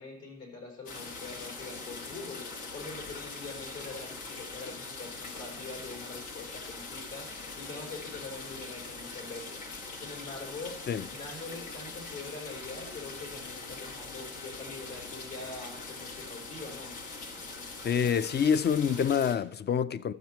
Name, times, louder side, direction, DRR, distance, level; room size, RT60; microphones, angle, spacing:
voice 1, 0.0-7.3 7.5-9.6 9.9-10.8 11.1-17.0, left 3 dB, 65° left, 4.5 m, -43 dB
sound 1, 0.9-19.4, left 3 dB, 80° left, 1.5 m, -42 dB
voice 2, 17.8-20.1, left 7 dB, 35° left, 0.4 m, -26 dB
12.5 x 7.2 x 4.6 m
cardioid pair, 90°, 30 cm